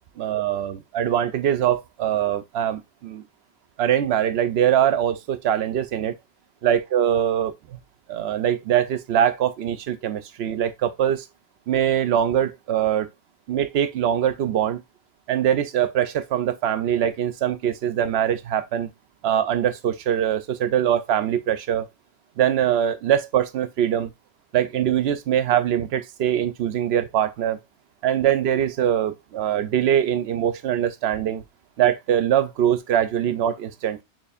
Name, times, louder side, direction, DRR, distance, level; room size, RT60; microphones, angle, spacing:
voice 1, 0.2-3.2 3.8-6.1 6.6-7.5 8.1-11.3 11.7-13.1 13.5-14.8 15.3-18.9 19.2-21.9 22.4-24.1 24.5-27.6 28.0-31.4 31.8-34.0, right 10 dB, 70° right, 0.8 m, -22 dB
6.7 x 3.0 x 2.4 m
omnidirectional pair, 1.1 m